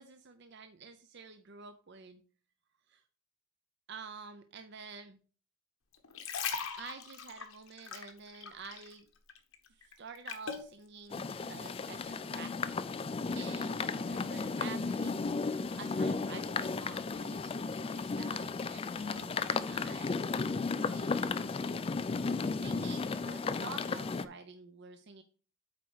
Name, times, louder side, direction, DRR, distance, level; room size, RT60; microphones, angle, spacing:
voice 1, 0.0-2.2 2.9-3.0 3.9-5.2 6.8-9.1 9.7-12.8 13.3-15.2 15.5-20.2 20.7-21.9 22.5-25.2, right 5 dB, 55° right, 8 dB, 0.6 m, -49 dB
sound 1, 5.9-9.0 9.3-10.7 11.3-11.5, left 6 dB, 80° left, 1.2 m, -40 dB
sound 2, 11.1-24.2, left 4 dB, 25° left, 0.3 m, -34 dB
8.4 x 4.5 x 4.8 m, 0.39 s
head